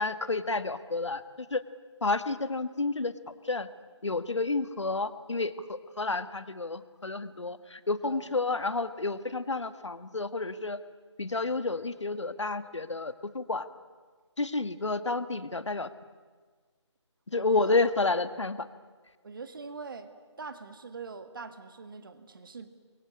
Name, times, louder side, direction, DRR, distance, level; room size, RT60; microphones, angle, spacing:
voice 1, 0.0-1.6 2.0-3.1 3.4-3.7 4.0-10.8 11.2-13.7 14.4-15.9 17.3-18.6, left 3 dB, 70° left, 12 dB, 1.7 m, -30 dB
voice 2, 17.4-17.8 19.2-20.1 20.4-22.7, right 4 dB, 45° right, 10 dB, 2.1 m, -43 dB
29.5 x 23.5 x 8.5 m, 1.4 s
figure-of-eight pair, 155°, 16 cm